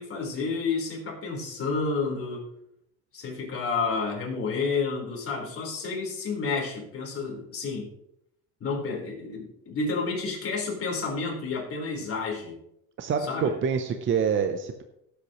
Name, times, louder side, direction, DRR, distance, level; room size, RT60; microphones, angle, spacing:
voice 1, 0.0-2.5 3.1-7.9 8.6-12.6 13.2-13.5, left 4 dB, 40° left, -2 dB, 4.2 m, -30 dB
voice 2, 13.0-14.8, right 6 dB, 35° right, 7 dB, 0.7 m, -26 dB
17.0 x 8.3 x 3.1 m, 0.79 s
cardioid pair, 130°, 36 cm